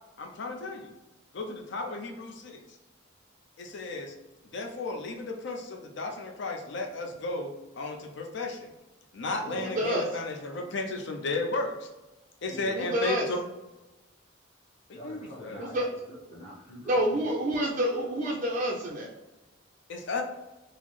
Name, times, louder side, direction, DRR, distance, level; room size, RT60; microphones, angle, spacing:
voice 1, 0.2-0.9 1.3-2.6 3.6-4.1 4.5-8.7 9.1-11.9 12.4-13.4 14.9-15.6 19.9-20.2, left 2 dB, 60° left, 3 dB, 0.5 m, -34 dB
voice 2, 9.6-10.0 12.7-13.3 15.6-15.9 16.9-19.1, equal, 35° right, -2 dB, 0.4 m, -28 dB
voice 3, 12.5-13.0 14.9-17.2, left 1 dB, 30° left, -5 dB, 1.0 m, -45 dB
3.9 x 2.0 x 3.1 m, 1.1 s
head